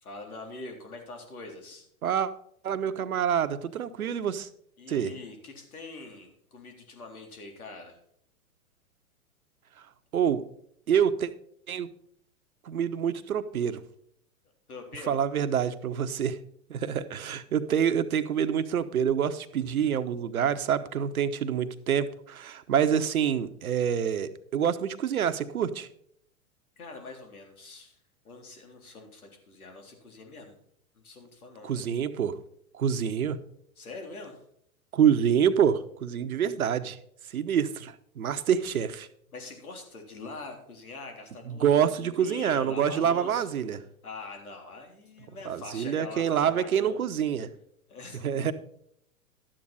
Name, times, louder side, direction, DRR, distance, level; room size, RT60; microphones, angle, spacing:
voice 1, 0.0-1.9 4.8-8.0 14.7-15.2 26.8-28.0 28.2-30.5 30.9-31.8 33.8-34.4 39.3-43.5 44.0-47.0 47.9-48.5, left 3 dB, 80° left, 3 dB, 3.7 m, -44 dB
voice 2, 2.6-4.5 4.9-5.1 10.1-10.4 10.9-11.3 11.7-11.9 12.6-13.8 15.1-16.4 16.7-25.9 31.6-32.4 32.7-33.4 34.9-37.0 37.3-39.1 41.5-43.8 45.5-47.5 48.2-48.5, right 8 dB, 75° right, 11 dB, 1.1 m, -26 dB
12.5 x 9.0 x 4.2 m, 0.69 s
hypercardioid pair, 115°, 43 cm